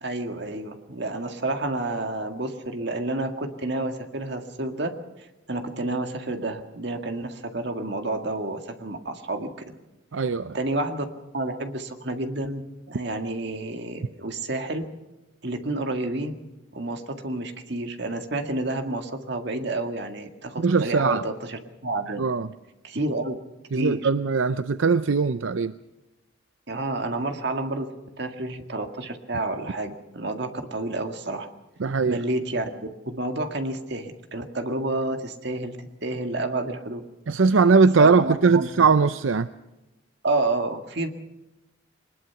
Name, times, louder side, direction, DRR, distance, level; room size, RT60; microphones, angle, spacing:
voice 1, 0.0-4.9 5.2-9.5 10.5-11.1 11.3-14.9 15.4-16.3 16.7-22.2 22.8-23.3 23.7-24.0 26.7-27.9 28.2-31.5 32.1-32.7 33.1-37.0 38.0-38.9 40.2-41.1, right 2 dB, 60° right, 6 dB, 2.0 m, -29 dB
voice 2, 10.1-10.6 20.6-21.2 22.2-22.5 23.7-25.7 31.8-32.2 37.3-39.5, right 4 dB, 80° right, 13 dB, 0.6 m, -20 dB
22.0 x 20.5 x 5.9 m, 1.0 s
head